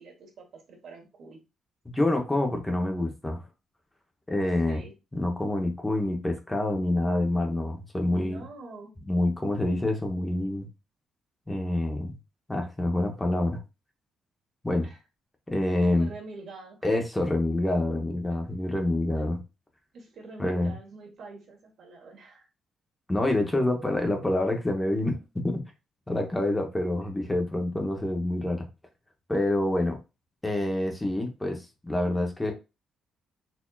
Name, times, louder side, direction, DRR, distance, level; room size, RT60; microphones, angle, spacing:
voice 1, 0.0-1.4 4.4-4.9 8.1-8.9 14.8-15.0 15.9-16.9 19.9-22.5 27.0-27.1, right 3 dB, 65° right, 1.3 m, -46 dB
voice 2, 1.9-3.4 4.3-4.8 5.1-8.4 9.1-10.7 11.5-12.1 12.5-13.6 14.6-14.9 15.5-16.1 16.8-19.4 20.4-20.7 23.1-25.6 26.1-28.7 29.3-30.0 30.4-32.5, left 1 dB, 15° left, 0.8 m, -27 dB
4.2 x 2.7 x 2.3 m
cardioid pair, 90°, 0 cm